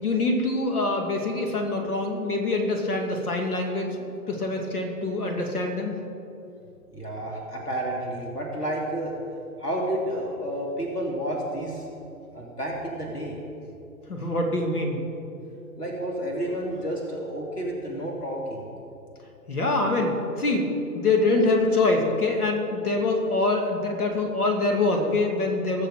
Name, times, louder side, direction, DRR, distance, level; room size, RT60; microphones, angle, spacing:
voice 1, 0.0-4.0 4.3-6.0 14.1-15.0 19.5-20.7 20.9-25.9, left 2 dB, 75° left, 2 dB, 2.5 m, -25 dB
voice 2, 6.9-9.1 9.6-11.9 12.3-13.4 15.8-18.6, right 1 dB, 90° left, -2 dB, 2.7 m, -30 dB
21.0 x 7.0 x 5.0 m, 2.6 s
figure-of-eight pair, 120°, 46 cm